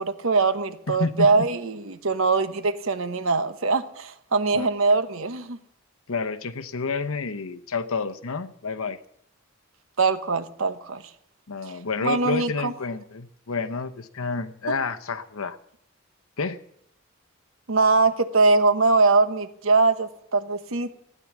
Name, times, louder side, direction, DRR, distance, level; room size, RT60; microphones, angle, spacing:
voice 1, 0.0-5.6 10.0-11.0 12.0-12.7 17.7-20.9, right 3 dB, 75° right, 10 dB, 1.1 m, -22 dB
voice 2, 0.9-1.5 4.5-4.7 6.1-9.0 11.5-15.6 16.4-16.6, left 4 dB, 85° left, 9 dB, 0.9 m, -29 dB
15.5 x 10.0 x 7.2 m, 0.75 s
head